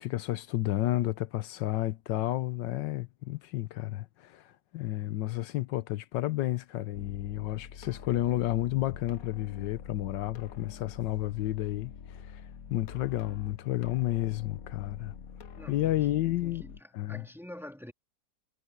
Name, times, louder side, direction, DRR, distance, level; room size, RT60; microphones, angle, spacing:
voice 1, 0.0-4.4 4.7-12.4 12.7-15.1 15.7-16.6 16.9-17.2, left 14 dB, 85° left, 1.4 m, -31 dB
sound 1, 6.9-16.8, left 7 dB, 55° left, 1.4 m, -46 dB
voice 2, 15.6-17.9, left 1 dB, ahead, 2.2 m, -47 dB
omnidirectional pair, 1.9 m